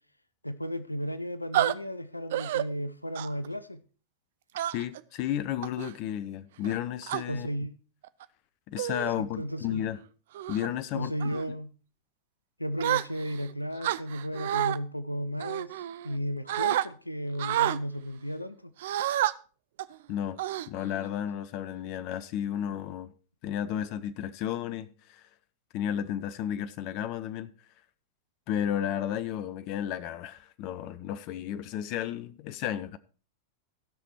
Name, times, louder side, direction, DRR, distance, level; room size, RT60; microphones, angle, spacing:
voice 1, 0.4-3.8 7.3-7.8 9.2-9.8 10.9-11.7 12.6-15.7 16.0-18.7, equal, 85° left, 0.6 m, -34 dB
sound 1, 1.5-1.7 2.3-2.6 3.1-3.5 4.5-5.0 5.6-5.9 6.6-7.2 8.0-8.2 8.8-9.1 9.6-9.9 10.3-10.7 11.2-11.5 12.8-13.4 13.8-14.8 15.4-16.2 16.5-16.9 17.4-17.8 18.8-19.3 19.8-19.9 20.4-21.1, right 13 dB, 55° right, 0.4 m, -29 dB
voice 2, 4.7-7.5 8.7-10.0 10.5-11.1 20.1-20.4 20.7-23.1 23.4-25.2 25.7-27.5 28.5-33.0, left 10 dB, 45° left, 0.6 m, -33 dB
15.5 x 5.9 x 4.5 m
figure-of-eight pair, 90°, 0 cm